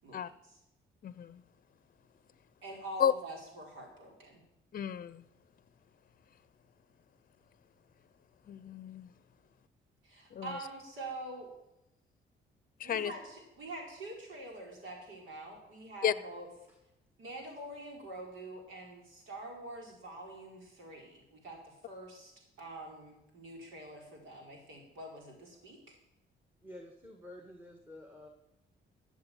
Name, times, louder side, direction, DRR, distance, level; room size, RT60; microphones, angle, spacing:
voice 1, 1.0-1.4 3.0-3.1 4.7-5.2 8.5-9.1 10.3-10.6 12.8-13.1 16.0-16.1, left 9 dB, 45° left, 17 dB, 0.6 m, -32 dB
voice 2, 2.6-4.4 10.0-11.5 12.8-16.5 17.2-22.3 22.6-25.9, right 2 dB, 80° right, 0 dB, 4.8 m, -45 dB
voice 3, 26.6-28.3, left 1 dB, 10° right, 4 dB, 1.8 m, -50 dB
13.0 x 7.5 x 8.9 m, 0.90 s
cardioid pair, 90°, 20 cm